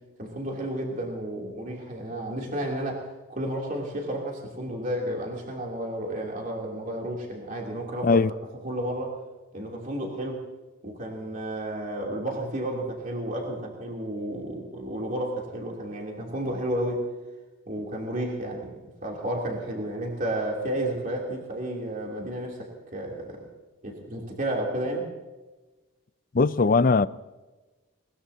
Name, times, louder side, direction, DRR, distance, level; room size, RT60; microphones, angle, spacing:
voice 1, 0.2-8.2 8.6-9.2 9.5-10.5 10.8-17.1 17.7-23.5 23.8-25.1, right 1 dB, 35° right, 3.1 m, -32 dB
voice 2, 26.3-27.1, left 4 dB, 40° left, 0.4 m, -19 dB
21.5 x 20.5 x 2.8 m
head